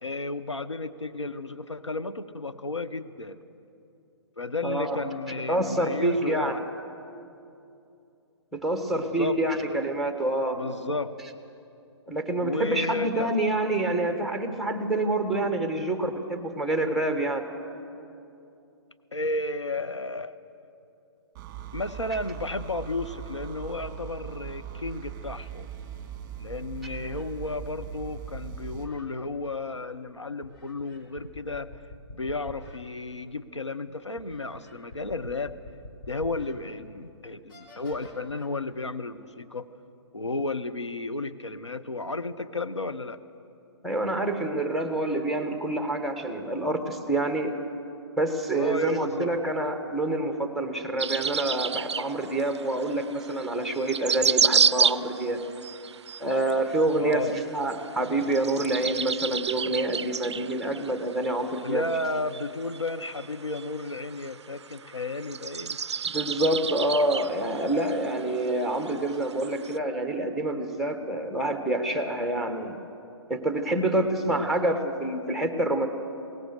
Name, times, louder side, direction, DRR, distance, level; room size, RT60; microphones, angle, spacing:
voice 1, 0.0-3.4 4.4-6.7 8.9-9.8 10.5-11.2 12.4-13.3 19.1-20.3 21.7-25.7 26.4-31.7 32.1-35.6 36.1-39.7 40.1-43.2 48.5-49.4 57.0-57.4 61.6-65.8 74.3-74.5, left 2 dB, 90° left, 9 dB, 0.9 m, -33 dB
voice 2, 4.6-5.0 5.5-6.6 8.5-10.6 12.1-17.5 43.8-47.6 48.2-55.4 56.2-61.8 66.0-72.8 73.3-75.9, right 1 dB, ahead, 6 dB, 1.3 m, -27 dB
sound 1, 21.4-28.9, right 9 dB, 20° right, 1.7 m, -40 dB
sound 2, 26.0-26.1 26.7-29.1 30.4-32.8 33.3-33.4 34.2-36.6 37.0-37.1 37.5-38.5, left 2 dB, 50° left, 4.0 m, -46 dB
sound 3, 51.0-69.8, right 6 dB, 75° right, 0.4 m, -30 dB
21.5 x 18.5 x 6.8 m, 2.7 s
figure-of-eight pair, 125°, 15 cm